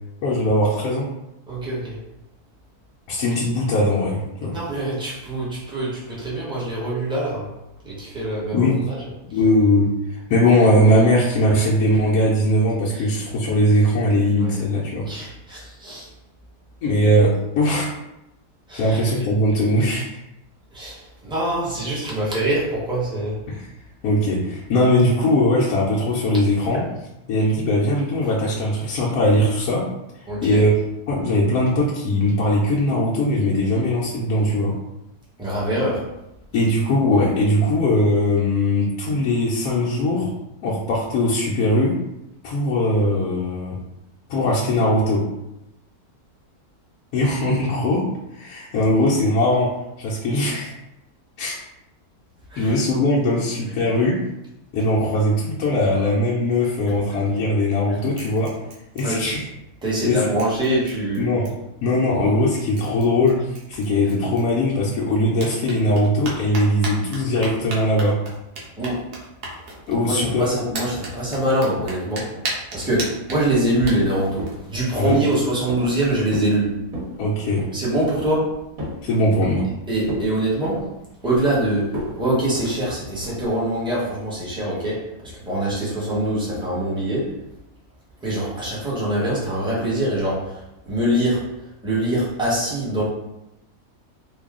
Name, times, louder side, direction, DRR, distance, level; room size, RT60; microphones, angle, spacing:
voice 1, 0.2-1.0 3.1-4.6 8.5-8.7 9.3-15.1 16.8-17.9 18.7-20.2 23.5-23.6 24.0-26.8 27.3-29.8 30.4-30.7 31.1-34.7 36.5-40.3 40.6-41.9 42.4-43.8 44.3-45.2 47.1-48.0 48.4-49.7 50.0-50.7 51.4-51.6 52.6-54.2 54.7-58.5 58.9-59.4 60.0-60.2 61.2-61.5 61.8-63.4 63.7-68.1 69.9-70.5 75.0-75.2 77.2-77.6 79.0-79.6, left 1 dB, 75° left, -6 dB, 1.1 m, -20 dB
voice 2, 1.5-2.0 4.5-7.6 7.8-9.0 9.3-9.4 12.9-13.0 14.4-14.5 14.9-16.1 18.7-19.0 20.7-23.4 30.3-30.6 35.4-36.1 52.5-52.8 57.9-58.0 59.0-59.4 59.8-61.3 68.8-69.1 69.7-76.8 77.7-78.6 79.9-81.0 81.2-87.4 88.2-93.0, right 1 dB, 5° right, -8 dB, 0.8 m, -24 dB
sound 1, 57.3-57.8 58.1-59.7 60.0-60.1 60.4-61.8 62.4-62.5 62.8-64.9 65.3-75.4, right 2 dB, 80° right, 1.4 m, -36 dB
sound 2, 73.7-74.1 74.4-74.7 75.1-75.3 75.7-76.0 76.3-76.6 76.8-77.2 77.6-77.8 78.2-79.0 79.4-79.8 80.0-80.3 80.6-81.5 81.9-82.1 82.5-82.8 83.2-83.5, equal, 65° right, 1.6 m, -32 dB
3.3 x 2.3 x 3.6 m, 0.89 s
omnidirectional pair, 1.6 m